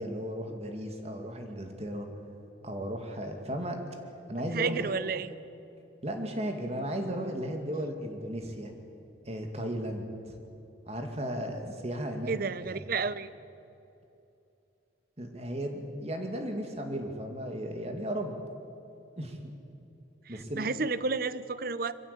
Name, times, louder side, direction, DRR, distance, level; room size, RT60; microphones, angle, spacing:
voice 1, 0.0-2.1 2.6-3.8 4.3-4.9 6.0-8.7 9.3-10.4 10.9-12.3 12.7-12.8 15.2-18.3 19.2-19.4 20.3-20.7, equal, 35° right, 4 dB, 2.3 m, -35 dB
voice 2, 4.5-5.3 12.3-13.3 20.3-21.9, right 4 dB, 55° right, 15 dB, 0.7 m, -31 dB
23.0 x 15.5 x 8.4 m, 2.7 s
head